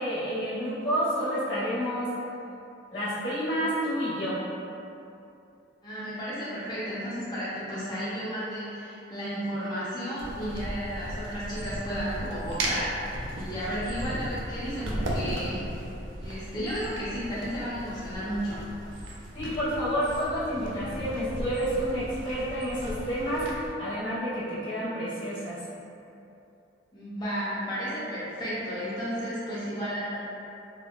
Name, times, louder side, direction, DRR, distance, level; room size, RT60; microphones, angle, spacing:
voice 1, 0.0-2.1 2.9-4.4 19.3-25.6, equal, 80° left, -13 dB, 1.2 m, -29 dB
voice 2, 5.8-15.6 16.2-18.7 26.9-30.3, equal, 25° left, -10 dB, 0.5 m, -33 dB
sound 1, 10.2-23.7, right 1 dB, 85° right, 0.4 m, -36 dB
3.4 x 2.2 x 2.2 m, 2.7 s
head